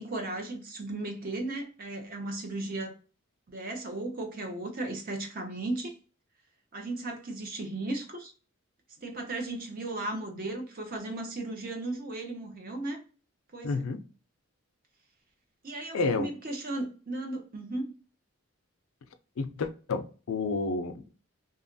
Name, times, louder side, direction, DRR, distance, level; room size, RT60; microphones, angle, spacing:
voice 1, 0.0-2.9 3.5-5.9 6.7-8.3 9.0-13.0 13.5-13.8 15.6-17.9, right 2 dB, 45° right, 0.6 m, -35 dB
voice 2, 13.6-14.0 15.9-16.3 19.4-21.1, left 3 dB, 75° left, 0.4 m, -30 dB
2.8 x 2.3 x 2.5 m
head